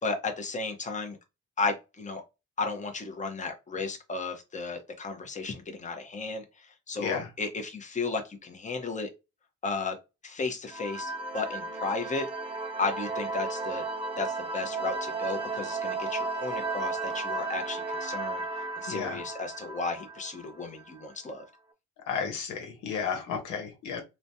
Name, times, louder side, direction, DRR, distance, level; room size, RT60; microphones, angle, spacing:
voice 1, 0.0-1.2 1.6-2.2 2.6-9.1 9.6-9.9 10.2-12.3 12.8-13.8 14.2-18.4 18.8-21.4, left 4 dB, 25° left, 0.8 m, -34 dB
sound 1, 10.7-21.1, right 3 dB, 20° right, 0.7 m, -34 dB
voice 2, 18.9-19.2 22.1-24.0, left 6 dB, 90° left, 1.0 m, -33 dB
3.2 x 2.2 x 2.7 m
cardioid pair, 90°, 30 cm